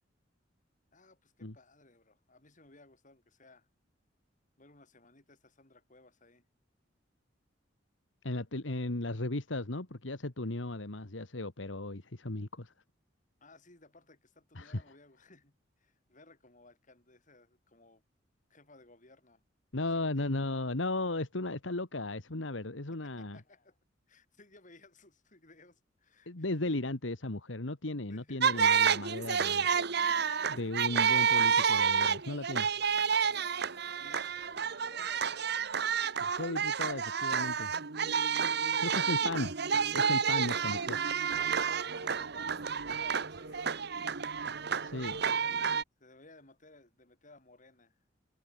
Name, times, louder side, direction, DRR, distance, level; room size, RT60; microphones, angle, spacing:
voice 1, 0.9-3.7 4.6-6.4 13.4-18.0 18.5-19.4 19.9-20.3 22.9-23.8 24.1-26.7 27.9-28.8 34.0-35.8 39.0-39.6 42.0-43.8 45.4-45.5 46.0-48.0, left 2 dB, 45° left, 7.0 m, -60 dB
voice 2, 8.2-12.7 14.6-14.8 19.7-23.4 26.3-29.7 30.5-32.7 36.2-37.7 38.8-39.5 39.9-41.0 44.8-45.2, left 2 dB, 85° left, 1.9 m, -36 dB
sound 1, 28.4-45.8, right 6 dB, 60° right, 1.2 m, -30 dB
head